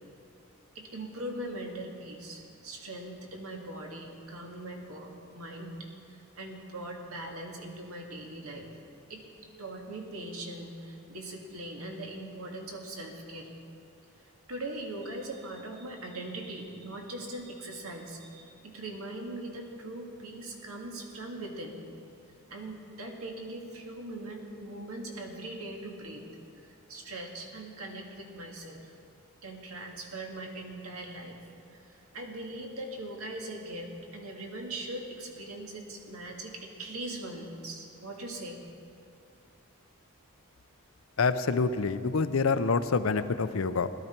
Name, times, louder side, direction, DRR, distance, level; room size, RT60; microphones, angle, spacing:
voice 1, 0.8-5.8 6.0-8.7 9.1-9.2 9.6-13.5 14.2-21.8 22.5-26.2 26.6-28.9 29.4-31.4 31.7-38.6, right 1 dB, 80° right, 1 dB, 1.9 m, -41 dB
voice 2, 41.2-43.9, left 4 dB, 70° left, 12 dB, 0.5 m, -27 dB
17.0 x 12.5 x 4.4 m, 2.6 s
head